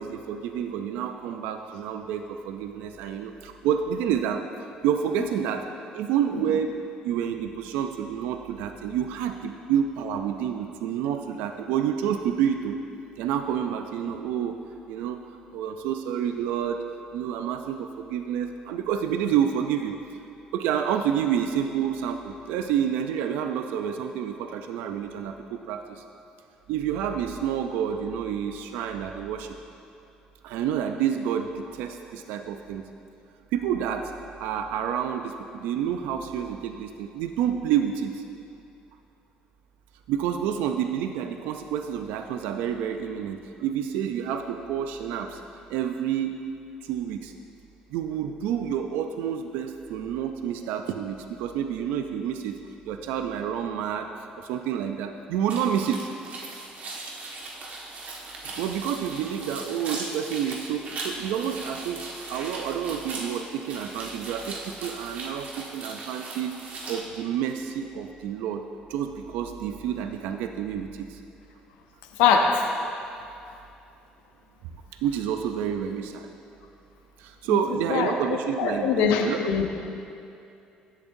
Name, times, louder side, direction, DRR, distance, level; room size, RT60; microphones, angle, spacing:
voice 1, 0.0-4.4 4.8-5.7 5.9-6.8 7.0-12.8 13.2-14.6 14.9-15.2 15.5-16.8 17.1-19.9 20.5-26.0 26.7-29.5 30.4-32.8 33.5-34.1 34.4-38.2 40.1-45.4 45.7-46.4 46.8-47.3 47.9-54.1 54.4-56.1 58.4-66.6 66.9-71.2 74.6-74.7 75.0-76.3 77.2-79.4, right 9 dB, 85° right, 6 dB, 0.4 m, -29 dB
sound 1, 55.5-67.0, right 3 dB, 55° right, 1.5 m, -38 dB
voice 2, 72.2-72.6 77.5-77.6 77.9-78.1 78.6-79.7, left 6 dB, 90° left, 3 dB, 0.6 m, -22 dB
16.0 x 7.1 x 2.6 m, 2.6 s
supercardioid pair, 90°, 3 cm